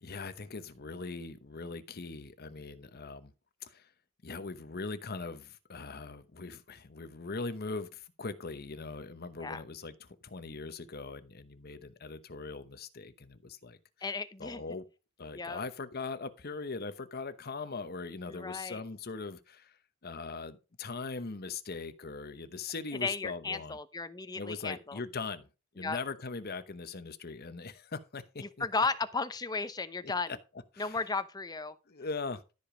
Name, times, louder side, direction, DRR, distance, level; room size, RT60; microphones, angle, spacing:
voice 1, 0.0-3.3 3.6-3.9 4.2-13.8 14.4-14.8 15.2-19.8 20.0-23.8 24.3-25.5 25.8-28.7 30.3-30.4 30.7-31.0 31.9-32.6, left 4 dB, 45° left, 0.9 m, -40 dB
voice 2, 14.0-14.6 15.3-15.6 18.3-18.8 23.0-25.0 25.8-26.0 28.4-30.4 30.8-31.8, left 4 dB, 20° left, 0.7 m, -35 dB
13.0 x 5.1 x 4.9 m
head